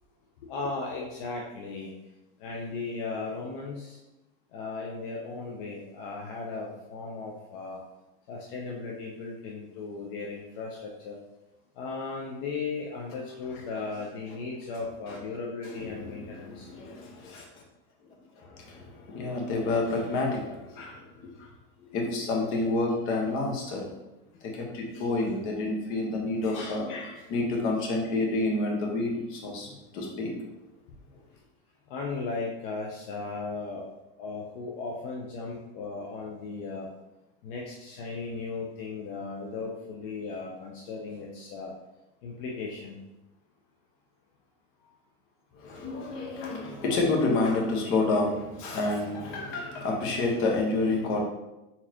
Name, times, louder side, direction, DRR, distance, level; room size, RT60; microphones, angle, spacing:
voice 1, 0.4-1.9 2.4-4.0 4.5-7.8 8.3-11.2 11.8-16.7 23.7-23.8 29.7-29.8 31.1-31.2 31.9-33.9 34.2-36.9 37.4-41.7 42.2-43.0, left 4 dB, 65° left, -2 dB, 0.8 m, -36 dB
voice 2, 14.8-15.2 15.6-17.4 18.0-21.5 21.9-23.9 24.4-29.7 29.9-30.4 45.5-51.2, left 2 dB, 45° left, -1 dB, 1.2 m, -29 dB
4.2 x 4.0 x 2.9 m, 0.98 s
supercardioid pair, 135°, 29 cm